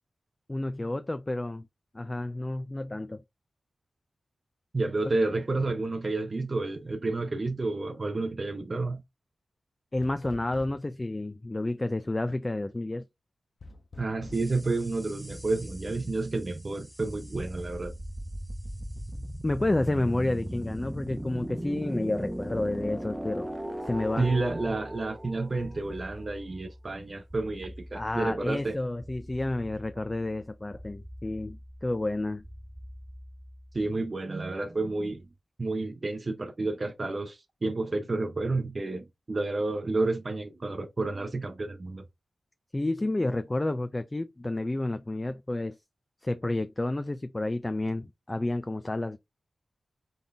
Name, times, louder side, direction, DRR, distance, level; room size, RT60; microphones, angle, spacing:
voice 1, 0.5-1.7 1.9-3.2 5.0-5.1 9.9-13.0 19.4-23.5 23.9-24.3 27.9-32.4 42.7-45.8 46.2-49.2, left 2 dB, 20° left, 0.4 m, -30 dB
voice 2, 4.7-9.0 14.0-17.9 24.2-28.8 33.7-35.2 35.6-42.0, right 3 dB, 40° right, 0.7 m, -30 dB
sound 1, 10.0-11.0 13.6-14.5, left 2 dB, 55° left, 0.9 m, -46 dB
sound 2, 14.3-34.0, equal, 5° right, 0.8 m, -40 dB
3.9 x 3.8 x 3.4 m
wide cardioid pair, 95°, 0 cm